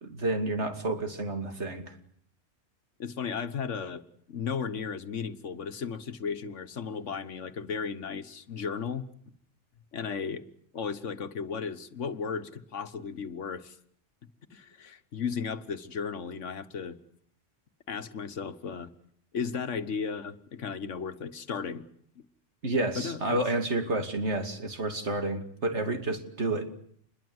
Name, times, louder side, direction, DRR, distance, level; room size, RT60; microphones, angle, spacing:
voice 1, 0.0-2.0 22.6-26.7, right 2 dB, 65° right, 6 dB, 2.9 m, -30 dB
voice 2, 3.0-9.1 9.9-10.4 10.7-13.8 14.5-17.0 17.9-18.9 19.3-21.8 22.1-22.2 23.0-23.4, left 6 dB, 75° left, 11 dB, 1.6 m, -35 dB
26.5 x 22.0 x 7.9 m, 0.62 s
omnidirectional pair, 1.2 m